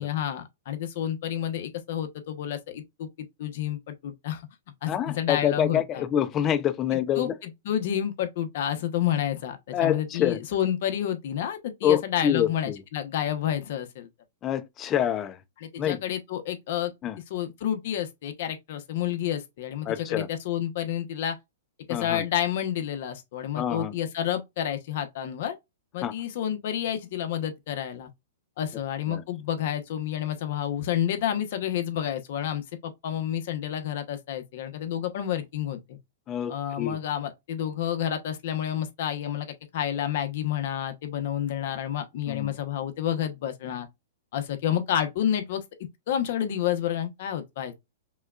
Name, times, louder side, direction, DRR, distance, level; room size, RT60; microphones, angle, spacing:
voice 1, 0.0-4.4 4.8-6.0 7.2-14.1 15.6-16.9 17.3-21.3 21.9-25.5 25.9-28.1 28.6-36.0 36.5-39.5 39.7-43.9 44.3-45.6 46.1-47.7, left 10 dB, 55° left, 1.0 m, -29 dB
voice 2, 4.9-7.3 9.7-10.4 11.8-12.8 14.4-15.4 15.8-16.0 17.0-17.2 19.9-20.3 21.9-22.2 23.6-23.9 26.0-26.1 29.1-29.2 36.3-37.0 42.3-42.5, left 10 dB, 25° left, 0.5 m, -26 dB
5.4 x 2.3 x 2.4 m
hypercardioid pair, 150°, 0 cm